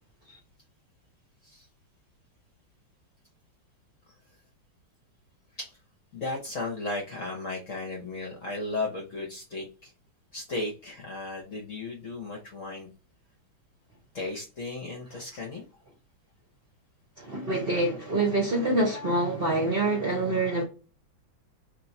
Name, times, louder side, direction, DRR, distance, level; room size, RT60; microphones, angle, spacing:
voice 1, 6.1-9.9 10.3-12.9 14.1-15.6, left 2 dB, 50° left, 1.0 m, -35 dB
voice 2, 17.2-20.6, right 2 dB, 40° right, 0.9 m, -26 dB
3.3 x 3.0 x 4.1 m
omnidirectional pair, 2.1 m